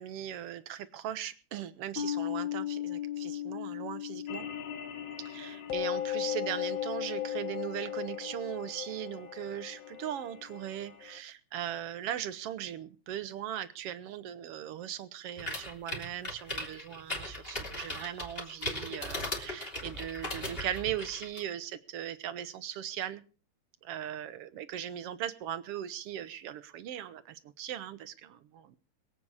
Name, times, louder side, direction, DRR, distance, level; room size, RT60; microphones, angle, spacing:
voice 1, 0.0-4.5 5.2-23.2 23.8-28.8, right 11 dB, 65° right, 13 dB, 1.7 m, -39 dB
sound 1, 2.0-8.7, left 11 dB, 75° left, 3.3 m, -39 dB
sound 2, 4.3-11.2, left 10 dB, 60° left, 2.7 m, -37 dB
sound 3, 15.4-21.4, left 1 dB, 20° left, 3.4 m, -38 dB
23.0 x 8.6 x 4.8 m, 0.35 s
omnidirectional pair, 3.3 m